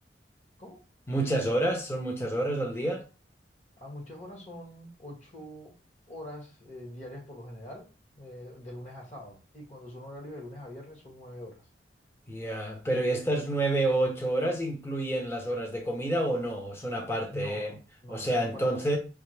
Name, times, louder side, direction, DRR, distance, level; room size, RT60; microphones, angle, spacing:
voice 1, 1.1-3.0 12.3-17.7 18.1-19.0, right 1 dB, 15° left, 0.8 m, -29 dB
voice 2, 3.8-5.7 6.1-11.7 17.3-18.9, left 1 dB, 45° left, 1.9 m, -44 dB
4.9 x 2.5 x 3.3 m
head